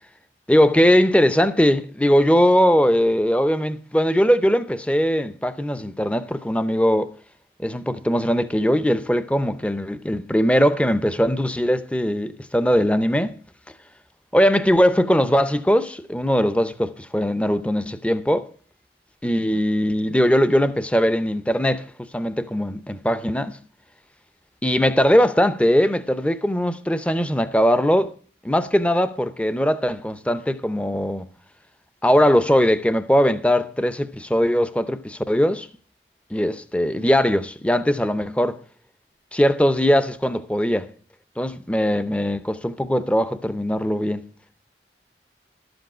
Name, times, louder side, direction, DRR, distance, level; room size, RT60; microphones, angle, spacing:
voice 1, 0.5-7.1 7.6-13.4 14.3-18.5 19.2-21.8 22.1-23.6 24.6-28.1 28.4-31.3 32.0-35.7 36.3-38.6 39.3-40.9 41.4-44.2, equal, 5° left, 0.6 m, -20 dB
12.5 x 7.9 x 6.1 m
head